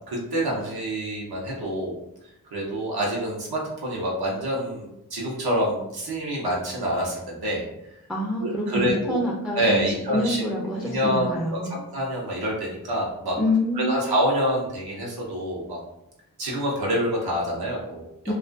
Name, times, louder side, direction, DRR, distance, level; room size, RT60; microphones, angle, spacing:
voice 1, 0.1-2.0 2.5-7.7 8.4-9.2 9.5-10.4 10.8-13.4 13.8-15.8 16.4-18.3, equal, 85° right, -3 dB, 0.7 m, -27 dB
voice 2, 8.1-11.7 13.4-14.0 18.3-18.4, left 1 dB, ahead, -3 dB, 0.3 m, -26 dB
2.3 x 2.2 x 2.5 m, 0.84 s
wide cardioid pair, 100°, 37 cm